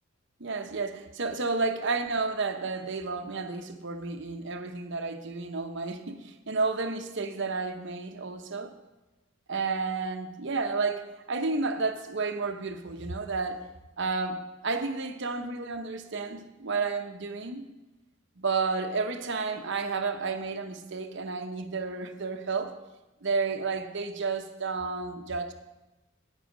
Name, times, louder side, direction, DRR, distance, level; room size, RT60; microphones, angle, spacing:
voice 1, 0.4-8.7 9.5-13.6 14.0-17.7 18.4-22.8 23.2-25.5, right 4 dB, 60° right, 7 dB, 1.0 m, -31 dB
10.0 x 9.1 x 5.1 m, 1.1 s
head